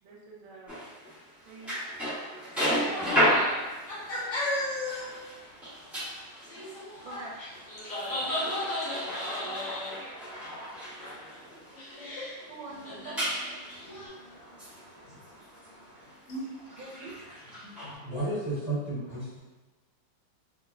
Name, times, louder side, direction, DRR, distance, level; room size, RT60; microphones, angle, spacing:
voice 1, 0.0-0.8 1.4-1.8 2.7-3.5 7.0-7.3 12.5-13.2 16.8-17.1, right 3 dB, 80° right, -3 dB, 1.4 m, -45 dB
sound 1, 0.7-12.0 12.4-12.5 12.7-17.9, equal, ahead, 0.6 m, -33 dB
sound 2, 2.5-5.2 5.4-5.5 6.4-10.6 11.0-11.4 11.7-12.4 12.7-14.1, left 1 dB, 45° left, 1.5 m, -35 dB
voice 2, 2.8-6.4 6.7-11.8 12.6-18.1 19.1-19.2, right 1 dB, 70° left, -7 dB, 1.5 m, -51 dB
voice 3, 18.0-19.4, right 2 dB, 30° right, -13 dB, 1.0 m, -32 dB
3.5 x 2.0 x 2.4 m, 1.2 s
omnidirectional pair, 2.3 m